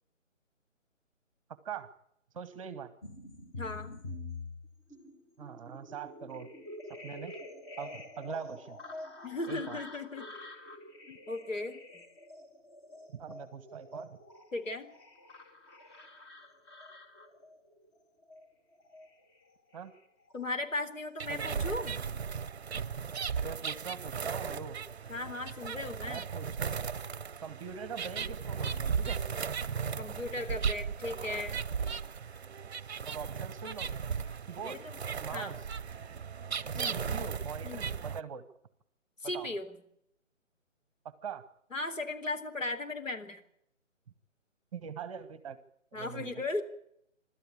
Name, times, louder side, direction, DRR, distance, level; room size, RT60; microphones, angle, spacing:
voice 1, 2.3-2.9 5.4-6.5 6.9-7.3 7.8-8.8 9.5-9.8 13.1-14.2 19.7-19.9 21.3-21.5 23.4-24.8 26.0-26.7 27.4-29.2 33.0-33.9 34.5-34.8 35.2-35.6 36.7-38.4 39.2-39.5 41.2-41.4 44.7-45.6 45.9-46.4, right 6 dB, 25° right, 14 dB, 1.3 m, -42 dB
sound 1, 3.0-20.8 21.1-21.9, left 2 dB, 20° left, 2.1 m, -47 dB
voice 2, 3.6-4.0 9.2-10.3 11.1-11.8 14.5-14.9 20.3-22.0 25.1-26.3 30.0-31.6 34.7-34.8 35.3-35.5 36.7-37.0 37.6-37.9 39.2-39.8 41.7-43.4 45.9-46.6, left 2 dB, 80° left, 6 dB, 3.9 m, -37 dB
sound 2, 21.2-38.2, right 6 dB, 55° right, 0.7 m, -36 dB
25.0 x 13.0 x 8.6 m, 0.73 s
figure-of-eight pair, 145°, 38 cm